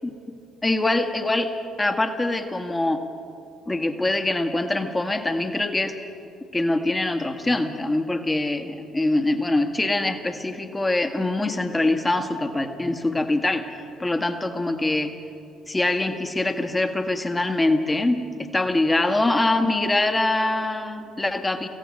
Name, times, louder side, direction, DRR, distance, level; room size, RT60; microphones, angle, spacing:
voice 1, 0.6-1.5 1.8-3.0 3.7-6.0 6.5-13.7 14.0-15.1 15.7-21.7, left 2 dB, 15° left, 7 dB, 1.7 m, -24 dB
24.5 x 16.5 x 6.5 m, 2.6 s
figure-of-eight pair, 50°, 0 cm